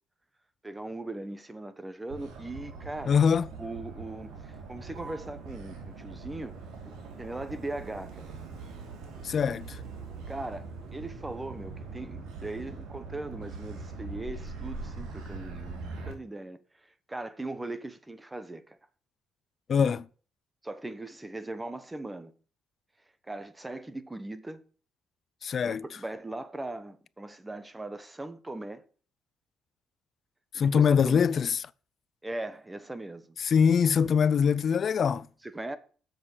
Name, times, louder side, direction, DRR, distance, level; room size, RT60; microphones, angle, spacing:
voice 1, 0.6-3.2 3.6-6.5 6.8-8.3 10.3-18.8 20.6-22.3 23.3-24.6 25.6-28.8 30.5-31.2 32.2-33.4 35.4-35.8, right 2 dB, 15° right, 1.1 m, -39 dB
Motor vehicle (road), 2.1-16.1, right 4 dB, 90° right, 2.8 m, -42 dB
voice 2, 3.1-3.5 9.2-9.8 19.7-20.1 25.4-25.8 30.5-31.6 33.4-35.3, left 7 dB, 50° left, 0.4 m, -23 dB
7.6 x 6.8 x 6.6 m
cardioid pair, 105°, 0 cm